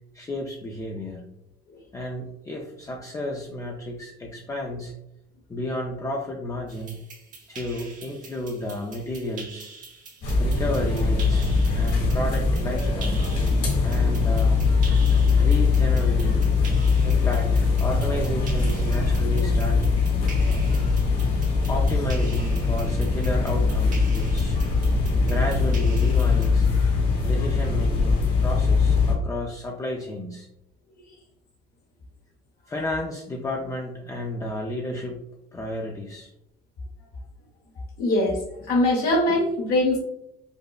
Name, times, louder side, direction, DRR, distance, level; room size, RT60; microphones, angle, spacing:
voice 1, 0.1-1.2 1.9-4.9 5.5-7.0 7.5-9.7 10.4-11.5 11.7-13.3 13.8-14.7 15.4-16.5 17.0-19.8 21.7-24.6 25.2-26.7 27.2-30.5 32.7-35.2 35.5-36.3 39.3-39.4, left 1 dB, 20° left, -1 dB, 0.4 m, -32 dB
sound 1, 6.7-26.5, right 4 dB, 50° right, 1.1 m, -45 dB
sound 2, 10.2-29.1, left 4 dB, 80° left, 1.3 m, -21 dB
voice 2, 38.0-38.4 38.7-40.0, left 1 dB, 65° left, -1 dB, 0.9 m, -21 dB
5.0 x 2.0 x 2.3 m, 0.83 s
cardioid pair, 110°, 17 cm